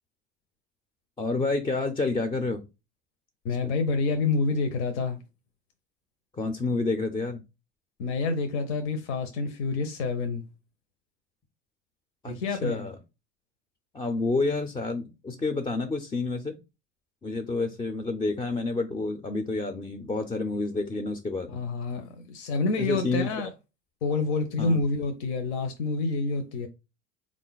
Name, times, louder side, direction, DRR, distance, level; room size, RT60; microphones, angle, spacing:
voice 1, 1.2-2.6 3.6-3.7 6.3-7.4 12.2-13.0 13.9-16.6 17.2-21.5 22.8-23.5 24.6-24.8, left 3 dB, 15° left, 0.4 m, -29 dB
voice 2, 3.4-5.2 8.0-10.4 12.3-12.9 21.5-23.5 24.0-26.7, left 3 dB, 75° left, 0.8 m, -28 dB
3.7 x 2.4 x 3.9 m
hypercardioid pair, 95°, 35 cm